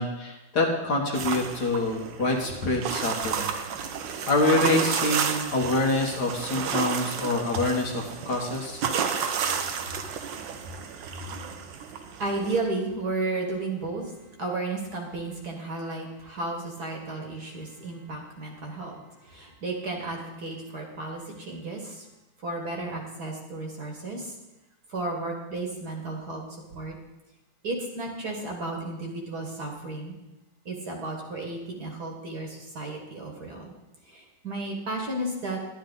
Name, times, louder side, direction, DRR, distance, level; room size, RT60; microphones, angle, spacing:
voice 1, 0.0-3.5 4.3-8.8, left 2 dB, 55° left, 0 dB, 1.8 m, -26 dB
sound 1, 1.1-12.6, right 7 dB, 65° right, 1.4 m, -31 dB
voice 2, 10.4-14.1 14.4-22.1 22.4-24.4 24.9-26.4 26.7-27.0 27.6-30.1 30.7-33.7 34.1-35.6, right 2 dB, 50° right, 1 dB, 2.0 m, -33 dB
11.0 x 11.0 x 3.9 m, 0.98 s
omnidirectional pair, 2.3 m